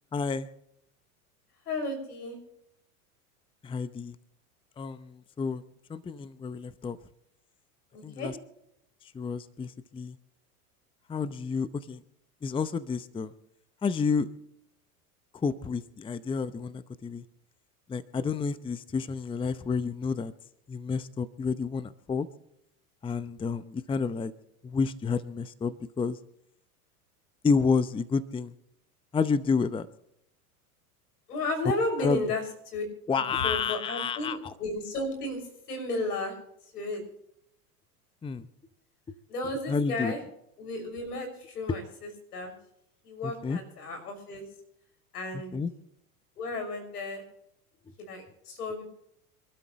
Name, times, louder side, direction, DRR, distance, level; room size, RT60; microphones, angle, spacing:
voice 1, 0.1-0.5 3.6-4.1 4.8-5.6 5.9-7.0 8.0-8.3 9.1-10.2 11.1-12.0 12.4-13.3 13.8-14.3 15.4-17.2 17.9-20.3 20.7-22.3 23.0-24.3 24.6-26.2 27.4-28.5 29.1-29.9 32.0-32.2 33.1-34.5 38.2-38.5 39.1-39.2 39.7-40.1 41.7-41.8 43.2-43.6 45.5-45.7, left 5 dB, 10° left, 15 dB, 0.7 m, -30 dB
voice 2, 1.7-2.4 7.9-8.3 31.3-32.4 32.7-32.8 33.1-35.4 35.7-36.3 36.7-37.0 39.3-40.2 40.6-42.5 43.0-44.4 45.1-45.6 46.4-47.2 48.0-48.8, left 2 dB, 85° left, 6 dB, 6.3 m, -33 dB
27.0 x 12.5 x 3.1 m, 0.75 s
hypercardioid pair, 95°, 45 cm